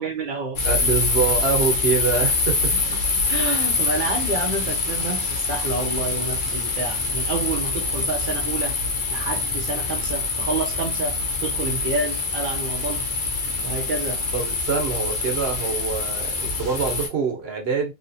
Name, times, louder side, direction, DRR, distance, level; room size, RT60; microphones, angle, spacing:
voice 1, 0.0-0.7 3.1-8.8 9.1-13.1 13.6-14.2, right 3 dB, 60° right, 0.8 m, -29 dB
sound 1, 0.6-17.1, left 3 dB, 55° left, 0.9 m, -25 dB
voice 2, 0.6-2.7 14.3-17.9, right 5 dB, 75° right, 1.2 m, -25 dB
3.1 x 2.8 x 2.7 m
omnidirectional pair, 1.0 m